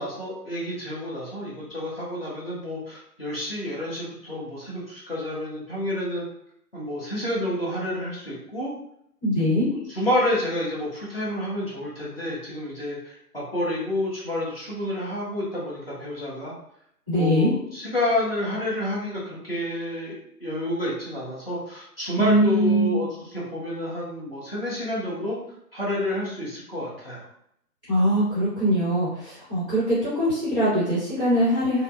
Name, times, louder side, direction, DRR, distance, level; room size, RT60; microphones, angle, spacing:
voice 1, 0.0-6.3 6.7-8.7 10.0-16.5 17.1-25.4 25.7-27.2, left 1 dB, 35° left, -6 dB, 0.7 m, -29 dB
voice 2, 9.2-9.7 17.1-17.5 22.2-23.0 27.9-31.8, equal, 10° left, -15 dB, 1.1 m, -22 dB
2.6 x 2.1 x 2.2 m, 0.73 s
hypercardioid pair, 170°, 49 cm